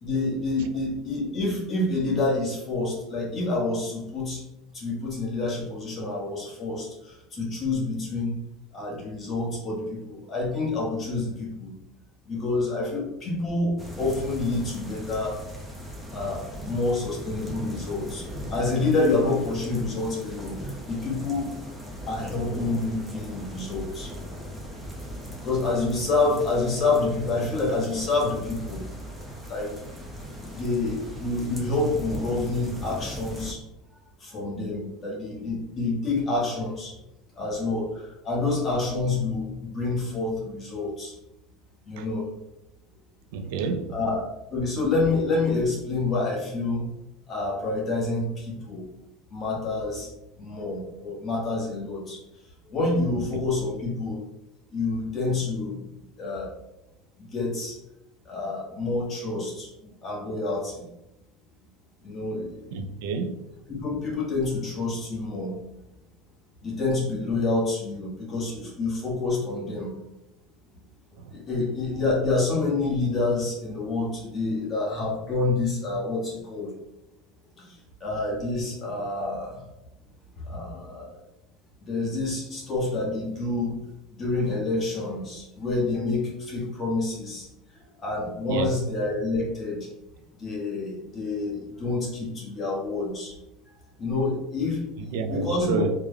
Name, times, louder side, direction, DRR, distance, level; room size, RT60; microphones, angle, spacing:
voice 1, 0.0-4.4 4.7-8.4 8.7-11.7 12.2-15.4 16.1-21.5 22.1-24.1 25.4-28.9 29.5-29.7 30.5-33.6 34.2-36.9 37.4-41.1 41.8-42.3 43.9-46.9 47.3-48.9 49.3-50.1 50.4-52.2 52.6-54.2 54.7-55.8 56.2-56.5 57.2-57.8 58.2-60.9 62.0-62.7 63.7-65.5 66.6-69.9 71.3-76.7 77.6-77.7 78.0-79.7 80.3-81.2 81.9-83.8 84.2-87.5 88.0-89.9 90.4-93.3 94.0-94.8 95.0-95.9, left 3 dB, 25° left, 1.3 m, -28 dB
sound 1, 13.8-33.5, equal, ahead, 0.6 m, -38 dB
voice 2, 43.3-43.9 62.7-63.4 88.5-88.7 95.1-95.9, right 5 dB, 80° right, 0.3 m, -29 dB
3.3 x 2.2 x 3.4 m
supercardioid pair, 145°, 0 cm